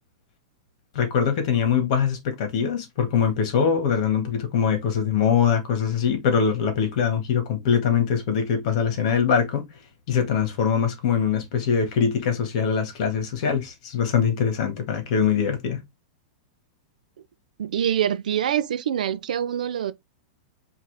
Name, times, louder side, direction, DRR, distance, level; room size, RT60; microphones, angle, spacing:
voice 1, 0.9-9.7 10.1-15.8, left 7 dB, 55° left, 1.9 m, -23 dB
voice 2, 17.6-19.9, right 9 dB, 90° right, 0.6 m, -25 dB
4.8 x 2.8 x 3.4 m
supercardioid pair, 155°, 4 cm